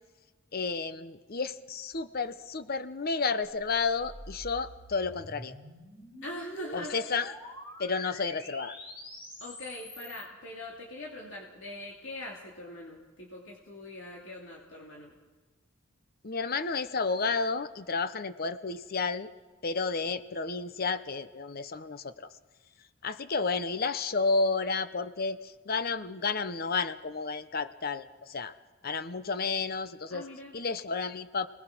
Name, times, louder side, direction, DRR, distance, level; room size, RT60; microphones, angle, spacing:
voice 1, 0.5-5.5 6.7-7.3 7.8-8.8 16.2-19.3 19.6-22.1 23.0-28.5 28.8-30.2 30.5-31.5, left 4 dB, 50° left, 12 dB, 0.9 m, -31 dB
sound 1, 3.5-10.3, left 1 dB, 30° left, 4.2 m, -46 dB
voice 2, 6.2-7.1 9.4-15.2 30.1-30.6, left 1 dB, 70° left, -2 dB, 2.8 m, -42 dB
28.5 x 19.5 x 6.1 m, 1.3 s
head